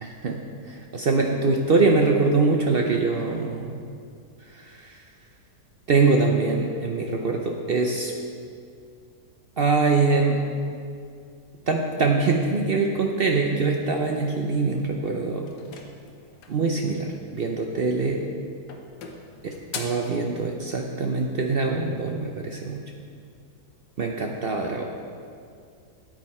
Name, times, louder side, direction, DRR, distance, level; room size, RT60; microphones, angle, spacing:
voice 1, 0.0-3.7 4.5-5.0 5.9-8.1 9.6-10.4 11.7-15.5 16.5-18.2 19.4-22.8 24.0-24.8, right 3 dB, 65° right, 1 dB, 0.5 m, -23 dB
sound 1, 15.5-16.7 17.9-18.3 18.7-20.1, left 5 dB, 75° left, 1.5 m, -40 dB
9.5 x 9.1 x 4.3 m, 2.3 s
omnidirectional pair, 1.8 m